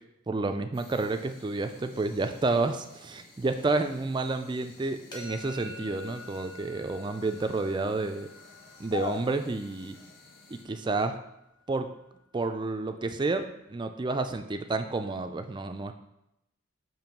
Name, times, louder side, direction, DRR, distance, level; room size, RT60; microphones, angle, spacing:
voice 1, 0.3-8.3 8.8-10.0 10.5-11.2 11.7-11.9 12.3-15.9, right 3 dB, 20° right, 7 dB, 0.3 m, -30 dB
sound 1, 0.7-10.6, left 5 dB, 45° left, 1.1 m, -47 dB
sound 2, 5.1-10.9, left 2 dB, 20° left, 1.2 m, -48 dB
7.0 x 3.2 x 5.9 m, 0.84 s
head